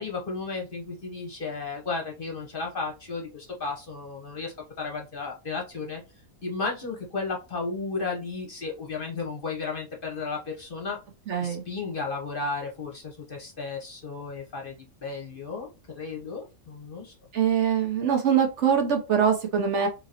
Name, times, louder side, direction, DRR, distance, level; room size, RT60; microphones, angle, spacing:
voice 1, 0.0-6.0 6.4-11.0 11.4-14.7 15.0-15.7 15.9-17.1 19.8-19.9, left 4 dB, 45° left, 0 dB, 0.9 m, -34 dB
voice 2, 11.3-11.6 17.3-19.9, right 7 dB, 60° right, 4 dB, 1.0 m, -23 dB
3.8 x 2.9 x 2.8 m, 0.28 s
omnidirectional pair, 1.5 m